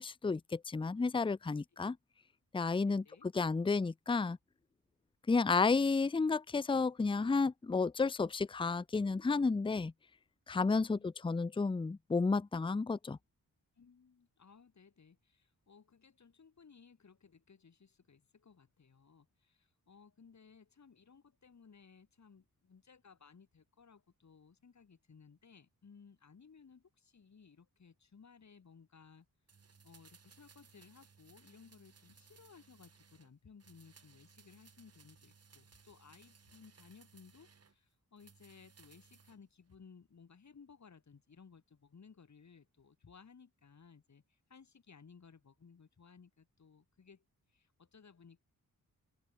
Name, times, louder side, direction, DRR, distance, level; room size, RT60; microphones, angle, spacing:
voice 1, 0.0-2.0 2.5-4.4 5.3-9.9 10.5-13.2, left 4 dB, 15° left, 0.5 m, -32 dB
voice 2, 2.8-3.3 10.7-11.1 13.8-29.3 29.8-48.4, left 5 dB, 50° left, 7.0 m, -60 dB
sound 1, 29.5-33.3 33.6-37.7 38.2-39.4 39.7-39.8, right 5 dB, 45° right, 3.2 m, -63 dB
open air
wide cardioid pair, 160°, 35 cm